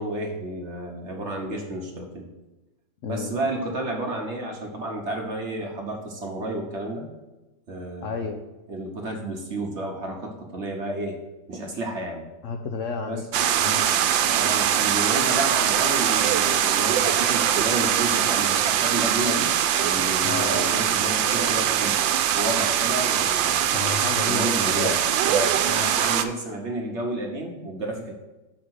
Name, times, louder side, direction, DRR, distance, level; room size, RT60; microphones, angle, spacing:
voice 1, 0.0-2.3 3.1-7.1 7.7-8.3 8.7-11.2 11.5-12.2 13.1-13.2 14.3-19.5 19.8-22.0 22.3-23.7 24.3-28.2, right 1 dB, 45° right, 1 dB, 1.1 m, -31 dB
voice 2, 3.0-3.3 8.0-8.4 12.4-13.2 13.6-13.9 20.2-20.7 23.7-25.0 25.6-25.9, left 5 dB, 80° left, 5 dB, 0.7 m, -32 dB
sound 1, 13.3-26.2, right 10 dB, 85° right, 1.3 m, -22 dB
6.6 x 5.0 x 6.2 m, 1.0 s
omnidirectional pair, 2.0 m